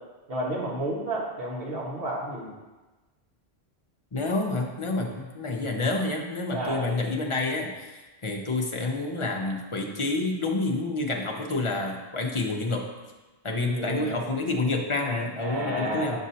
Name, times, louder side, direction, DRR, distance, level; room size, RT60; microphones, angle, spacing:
voice 1, 0.3-2.5 6.5-7.0 13.5-14.2 15.4-16.2, right 1 dB, 55° right, -4 dB, 1.6 m, -31 dB
voice 2, 4.1-12.8 13.4-16.2, left 2 dB, 35° left, 1 dB, 0.6 m, -28 dB
7.3 x 6.2 x 2.8 m, 1.2 s
omnidirectional pair, 1.2 m